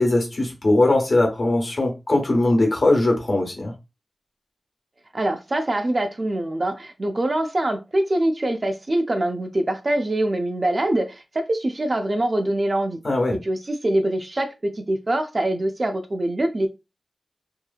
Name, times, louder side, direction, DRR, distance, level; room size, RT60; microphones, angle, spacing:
voice 1, 0.0-3.7 13.0-13.4, left 2 dB, 55° left, 1.0 m, -20 dB
voice 2, 5.1-13.0 13.3-16.7, right 1 dB, 40° right, 0.4 m, -24 dB
2.8 x 2.6 x 2.4 m
wide cardioid pair, 95°, 0 cm